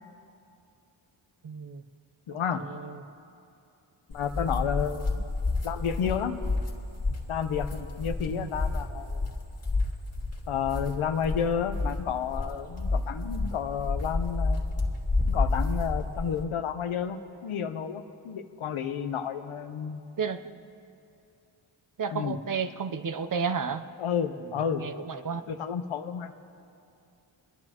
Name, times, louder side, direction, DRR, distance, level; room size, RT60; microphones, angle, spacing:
voice 1, 1.4-1.8 2.6-3.0 8.3-8.5 20.2-20.6 22.0-23.8 24.8-25.4, right 6 dB, 40° right, 9 dB, 0.7 m, -32 dB
voice 2, 2.3-2.6 4.1-5.4 5.6-6.4 7.3-9.2 10.5-14.6 15.3-20.0 22.1-22.4 24.0-24.9 25.5-26.3, left 7 dB, 90° left, 8 dB, 0.9 m, -31 dB
sound 1, 4.1-16.4, left 3 dB, 30° left, 2.1 m, -30 dB
29.5 x 11.0 x 2.9 m, 2.6 s
cardioid pair, 80°, 48 cm